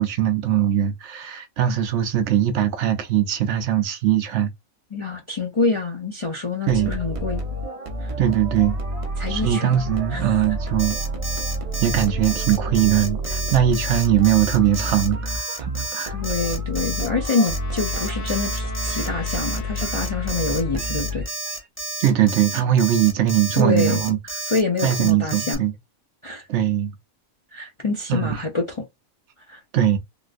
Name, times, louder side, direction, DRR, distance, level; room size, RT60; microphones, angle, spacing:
voice 1, 0.0-4.5 6.7-6.9 8.2-8.8 9.3-11.0 11.8-16.1 22.0-24.2 24.8-25.7 26.5-26.9 28.1-28.4 29.7-30.0, right 11 dB, 70° right, 0.8 m, -21 dB
voice 2, 4.9-7.4 8.0-8.1 9.2-9.8 10.1-10.3 16.1-21.3 23.5-24.0 24.4-25.6 26.2-26.4 27.5-28.8 29.5-29.6, left 3 dB, 35° left, 0.4 m, -26 dB
sound 1, 6.7-21.6, equal, 35° right, 0.5 m, -29 dB
Alarm, 10.8-25.5, right 2 dB, 10° left, 0.9 m, -31 dB
Trumpet, 16.2-20.8, left 5 dB, 70° left, 1.5 m, -41 dB
3.9 x 2.4 x 2.4 m
omnidirectional pair, 1.4 m